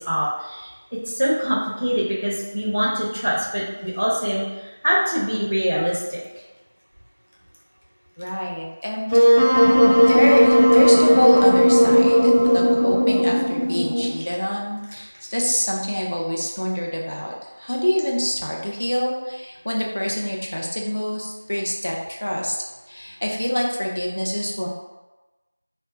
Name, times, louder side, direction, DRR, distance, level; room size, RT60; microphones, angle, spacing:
voice 1, 0.0-6.2, equal, 45° right, -4 dB, 0.7 m, -24 dB
voice 2, 8.2-9.1 10.0-22.6 22.9-24.7, equal, 40° left, -2 dB, 0.4 m, -25 dB
Wind instrument woodwind instrument, 9.1-14.2, equal, 60° left, 0.8 m, -15 dB
2.1 x 2.0 x 3.7 m, 1.1 s
figure-of-eight pair, 180°, 0 cm